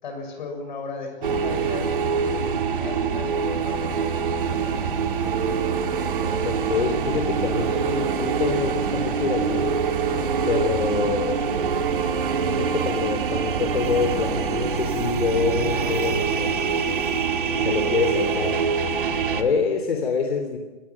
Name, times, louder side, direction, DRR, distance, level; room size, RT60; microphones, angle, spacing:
voice 1, 0.0-4.3 15.7-16.1, left 4 dB, 45° left, 5 dB, 6.9 m, -37 dB
sound 1, 1.2-19.4, right 6 dB, 50° right, 2.4 m, -25 dB
Fixed-wing aircraft airplane, 4.4-14.4, right 6 dB, 10° right, 0.8 m, -38 dB
voice 2, 6.4-9.8 10.4-11.4 12.5-16.6 17.6-18.6 19.3-20.6, left 5 dB, 65° left, 5 dB, 3.3 m, -26 dB
27.0 x 20.5 x 6.1 m, 1.3 s
hypercardioid pair, 170°, 33 cm